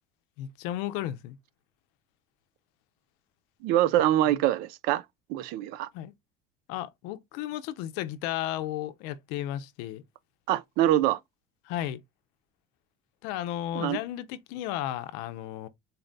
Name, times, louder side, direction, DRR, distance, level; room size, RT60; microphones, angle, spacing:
voice 1, 0.4-1.4 5.9-6.1 6.7-10.0 11.6-12.0 13.2-15.7, left 13 dB, 80° left, 0.5 m, -34 dB
voice 2, 3.6-5.0 5.3-5.9 10.5-11.2 13.7-14.0, right 13 dB, 70° right, 0.4 m, -24 dB
4.0 x 2.1 x 3.9 m
cardioid pair, 125°, 16 cm